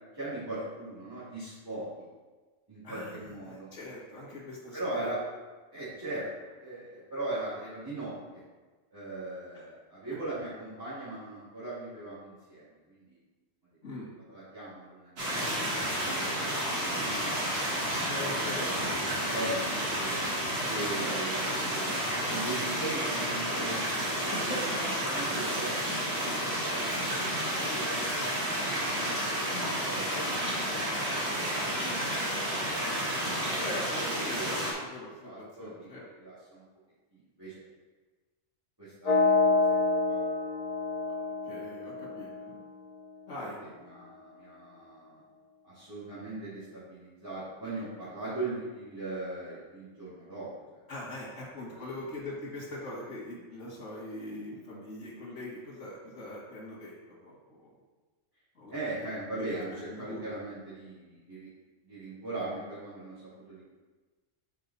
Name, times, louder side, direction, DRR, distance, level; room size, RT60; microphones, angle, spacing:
voice 1, 0.1-2.0 2.7-3.7 4.7-5.2 5.7-8.4 8.9-13.2 14.3-15.7 16.8-18.3 18.6-20.2 20.6-24.6 25.0-26.1 26.6-27.5 27.7-28.5 28.8-29.3 29.8-32.7 34.2-34.6 35.2-35.9 36.2-36.6 37.1-37.6 38.8-39.8 40.0-40.2 43.4-45.2 45.6-50.8 51.7-52.2 58.7-61.5 61.8-63.7, right 2 dB, 15° right, -14 dB, 2.4 m, -40 dB
voice 2, 2.8-5.1 13.8-14.1 18.1-19.2 21.0-21.4 23.9-25.1 30.2-30.4 33.5-36.0 41.5-42.6 43.3-43.7 50.9-56.9 57.2-57.7 58.6-58.7 59.3-60.2, left 1 dB, 80° left, -6 dB, 2.1 m, -42 dB
sound 1, 15.2-34.7, equal, 55° right, 1.8 m, -31 dB
sound 2, 39.1-43.0, left 3 dB, 45° left, 0.5 m, -28 dB
6.6 x 5.1 x 4.1 m, 1.3 s
omnidirectional pair, 1.3 m